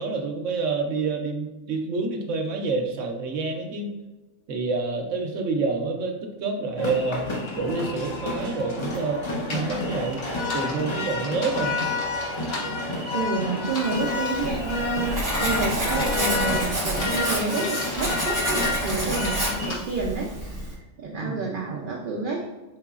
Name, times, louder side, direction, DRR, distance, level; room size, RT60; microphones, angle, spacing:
voice 1, 0.0-3.9 4.5-7.3 7.6-9.2 9.5-10.3 10.5-11.8 21.1-21.5, right 3 dB, 80° right, 4 dB, 1.0 m, -28 dB
sound 1, 6.8-19.8, left 3 dB, 35° left, 0.4 m, -29 dB
sound 2, 9.5-9.7 10.2-12.7 13.6-14.5 15.0-15.3 15.9-18.3 18.6-19.8, left 2 dB, 85° left, 1.5 m, -37 dB
voice 2, 13.1-20.7 21.0-22.4, right 4 dB, 55° right, -2 dB, 0.6 m, -29 dB
Writing, 14.0-20.7, right 1 dB, 15° right, 0.8 m, -29 dB
4.7 x 3.7 x 2.4 m, 1.1 s
omnidirectional pair, 1.3 m